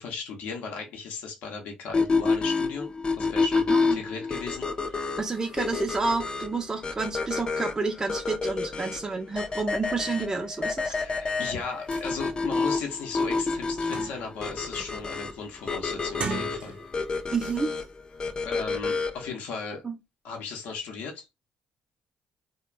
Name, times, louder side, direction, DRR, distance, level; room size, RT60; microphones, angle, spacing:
voice 1, 0.0-2.9 3.2-5.2 10.9-16.8 18.4-19.8 20.2-21.3, left 5 dB, 75° left, 0.7 m, -36 dB
sound 1, 1.9-19.3, left 4 dB, 30° left, 0.4 m, -29 dB
voice 2, 3.7-4.0 5.2-11.0 17.3-17.7 19.8-20.0, right 4 dB, 25° right, 0.4 m, -30 dB
sound 2, 11.6-11.7 11.9-12.1 12.6-12.7 13.1-14.5 14.9-15.2 16.0-17.0 17.4-17.6, right 4 dB, 55° right, 0.8 m, -38 dB
2.4 x 2.1 x 3.0 m
supercardioid pair, 65°, 3 cm